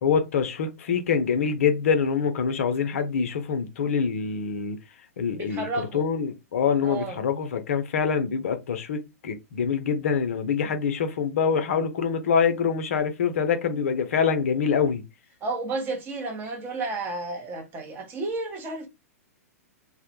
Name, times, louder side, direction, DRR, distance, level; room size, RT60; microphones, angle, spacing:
voice 1, 0.0-4.8 5.2-5.7 5.9-15.0, left 6 dB, 60° left, 0.5 m, -25 dB
voice 2, 5.3-6.1 6.8-7.2 15.4-18.9, right 3 dB, 25° right, 0.6 m, -32 dB
2.1 x 2.0 x 2.9 m
figure-of-eight pair, 105°, 8 cm